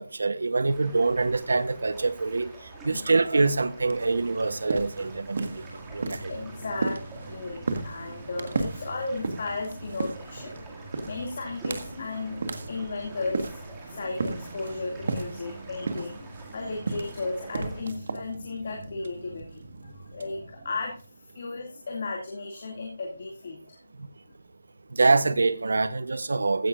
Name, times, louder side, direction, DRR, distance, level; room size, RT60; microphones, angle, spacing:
voice 1, 0.0-2.5 2.8-5.6 5.9-6.3 24.0-24.1 24.9-26.7, right 3 dB, 75° right, 1.0 m, -25 dB
sound 1, 0.7-17.8, right 2 dB, 10° right, 2.1 m, -46 dB
sound 2, 3.8-21.3, right 3 dB, 50° right, 1.6 m, -36 dB
voice 2, 6.3-13.6 13.9-20.9 21.3-23.8, left 3 dB, 40° left, 2.4 m, -35 dB
15.5 x 10.0 x 2.5 m
hypercardioid pair, 175°, 0 cm